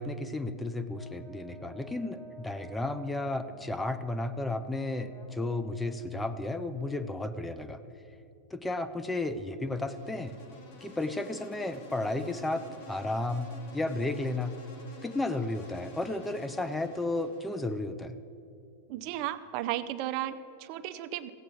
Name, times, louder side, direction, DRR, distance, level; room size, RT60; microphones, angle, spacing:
voice 1, 0.0-7.8 8.5-10.4 10.8-14.6 15.0-18.2, left 2 dB, 10° left, 11 dB, 0.6 m, -33 dB
Brass instrument, 0.9-7.7, equal, 35° left, 1.9 m, -52 dB
Insect, 9.6-17.8, left 2 dB, 60° left, 2.2 m, -50 dB
voice 2, 18.9-21.3, right 13 dB, 50° right, 12 dB, 0.5 m, -34 dB
15.5 x 8.1 x 6.2 m, 2.6 s
hypercardioid pair, 125°, 0 cm